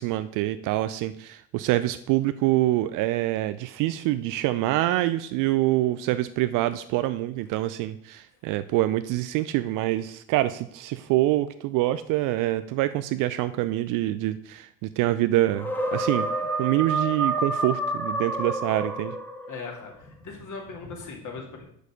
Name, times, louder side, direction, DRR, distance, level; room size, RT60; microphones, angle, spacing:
voice 1, 0.0-16.3 16.6-19.1, right 15 dB, 45° right, 13 dB, 0.5 m, -25 dB
sound 1, 15.5-19.6, right 2 dB, 5° left, 1.1 m, -28 dB
voice 2, 19.5-21.6, left 4 dB, 40° left, 1 dB, 2.5 m, -39 dB
6.6 x 6.3 x 5.1 m, 0.67 s
figure-of-eight pair, 65°, 46 cm